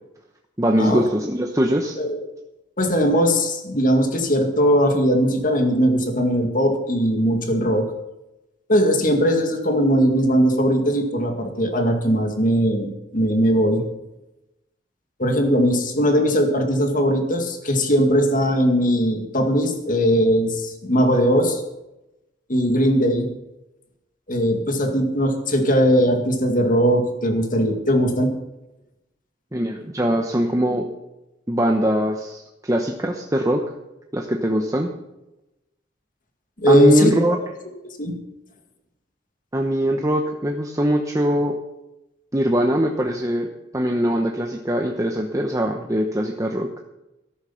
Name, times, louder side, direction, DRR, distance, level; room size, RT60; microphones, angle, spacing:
voice 1, 0.6-2.0 29.5-30.9 31.5-33.6 34.1-34.9 36.7-37.4 39.5-41.6 42.3-46.7, equal, 15° right, 3 dB, 0.9 m, -21 dB
voice 2, 2.8-7.9 8.7-13.8 15.2-21.6 22.5-23.3 24.3-28.3 36.6-37.4 37.8-38.1, equal, 45° left, 5 dB, 2.2 m, -19 dB
13.5 x 11.5 x 5.8 m, 0.94 s
head